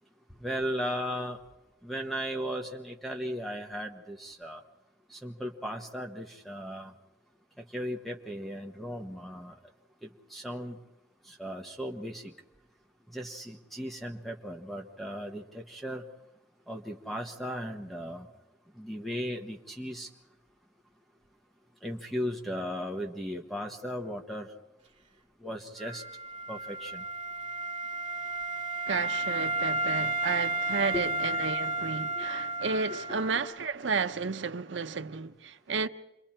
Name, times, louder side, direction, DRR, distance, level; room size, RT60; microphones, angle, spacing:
voice 1, 0.2-1.4 1.8-4.6 5.1-7.0 7.6-9.7 10.0-10.8 11.2-12.4 13.1-16.1 16.7-18.3 18.7-20.1 21.8-24.5 25.4-26.1 26.5-27.1 30.9-31.0 32.0-32.3 32.9-33.2, equal, ahead, 1.2 m, -37 dB
Wind instrument woodwind instrument, 25.8-33.5, right 2 dB, 30° right, 2.3 m, -32 dB
voice 2, 28.9-35.9, right 4 dB, 90° right, 0.8 m, -32 dB
28.0 x 22.5 x 4.4 m
head